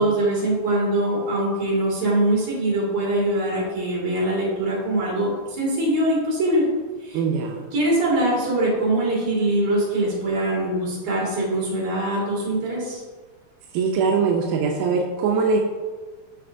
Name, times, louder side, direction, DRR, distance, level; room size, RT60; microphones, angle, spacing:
voice 1, 0.0-6.7 7.0-7.2 7.7-13.0, right 1 dB, 60° right, -6 dB, 3.3 m, -23 dB
voice 2, 7.1-7.7 13.7-15.6, right 5 dB, 90° right, 1 dB, 2.1 m, -22 dB
12.0 x 4.1 x 2.6 m, 1.4 s
omnidirectional pair, 3.5 m